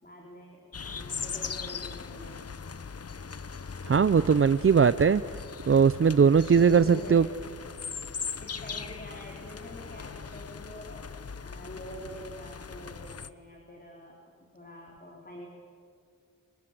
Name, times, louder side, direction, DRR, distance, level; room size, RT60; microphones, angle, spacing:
voice 1, 0.0-2.4 6.6-7.3 8.4-11.1 11.4-14.2 14.5-15.5, equal, 25° left, -1 dB, 4.3 m, -46 dB
sound 1, 0.7-13.3, left 5 dB, 45° left, 0.9 m, -40 dB
voice 2, 3.9-5.2 5.7-7.2, right 6 dB, 40° right, 15 dB, 0.6 m, -20 dB
29.0 x 20.5 x 7.7 m, 2.4 s
cardioid pair, 50°, 34 cm